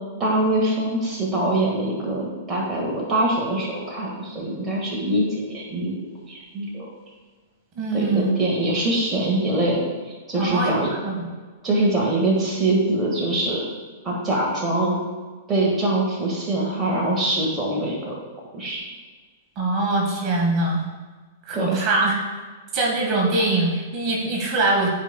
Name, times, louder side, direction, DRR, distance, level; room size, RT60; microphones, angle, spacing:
voice 1, 0.2-6.9 7.9-9.8 10.3-10.9 11.6-13.6 14.0-15.0 15.5-18.1 18.5-18.8 21.5-21.8, right 1 dB, 20° right, -3 dB, 1.7 m, -23 dB
voice 2, 7.8-8.3 10.3-11.2 19.6-20.8 21.5-22.2 22.7-24.9, right 2 dB, 35° right, -2 dB, 1.8 m, -22 dB
12.0 x 5.1 x 2.3 m, 1.4 s
figure-of-eight pair, 105°, 0 cm